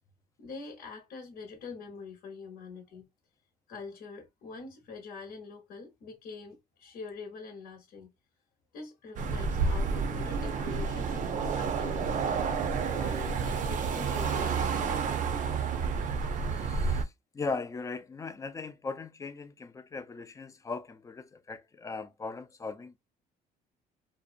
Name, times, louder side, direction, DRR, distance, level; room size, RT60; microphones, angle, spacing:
voice 1, 0.4-3.1 3.7-8.1 8.7-12.4 12.9-15.1, left 4 dB, 65° left, 0.9 m, -44 dB
sound 1, 9.2-17.0, right 5 dB, 50° right, 0.5 m, -30 dB
voice 2, 16.3-23.0, left 4 dB, 20° left, 0.3 m, -39 dB
2.6 x 2.1 x 2.4 m
cardioid pair, 110°, 17 cm